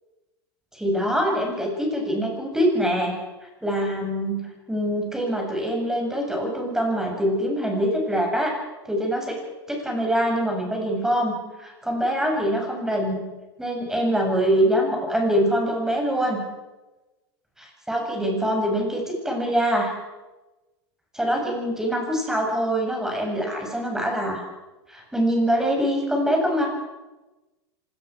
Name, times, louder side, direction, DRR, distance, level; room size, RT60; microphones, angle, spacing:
voice 1, 0.7-3.2 3.6-4.4 4.7-8.5 8.8-9.4 9.7-11.3 11.6-13.2 13.6-16.4 17.9-19.9 21.1-24.4 24.9-26.7, equal, 5° right, 1 dB, 7.5 m, -24 dB
25.0 x 19.5 x 6.3 m, 1.1 s
hypercardioid pair, 115°, 14 cm